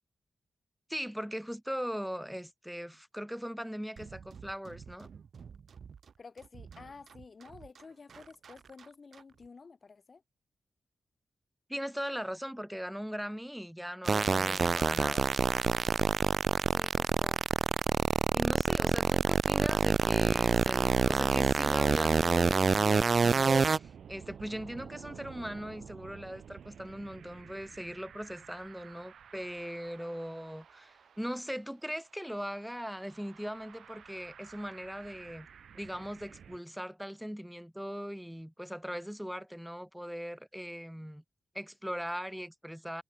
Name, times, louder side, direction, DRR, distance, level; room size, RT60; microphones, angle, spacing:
voice 1, 0.9-5.1 11.7-15.3 18.3-35.5 35.7-41.2 41.5-43.0, equal, ahead, 1.6 m, -40 dB
sound 1, 4.0-9.5, right 6 dB, 65° right, 1.3 m, -51 dB
voice 2, 6.2-10.2 16.7-17.4, left 4 dB, 40° left, 4.2 m, -52 dB
sound 2, 14.0-23.8, right 5 dB, 45° right, 0.3 m, -26 dB
sound 3, 19.6-36.6, right 8 dB, 80° right, 2.9 m, -52 dB
wide cardioid pair, 120°, 0 cm